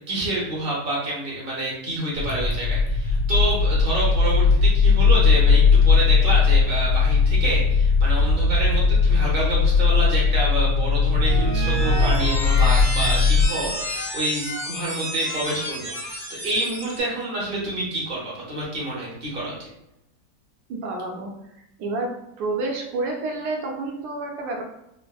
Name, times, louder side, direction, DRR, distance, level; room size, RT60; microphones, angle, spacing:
voice 1, 0.1-19.5, right 1 dB, 45° right, -5 dB, 0.8 m, -28 dB
sound 1, 2.1-13.5, left 4 dB, 85° left, 1.3 m, -18 dB
sound 2, 11.1-17.0, equal, 40° left, 1.3 m, -30 dB
voice 2, 20.7-21.3 21.8-22.1 22.4-24.6, right 2 dB, 75° right, 1 dB, 1.1 m, -29 dB
3.3 x 2.0 x 2.3 m, 0.84 s
omnidirectional pair, 1.8 m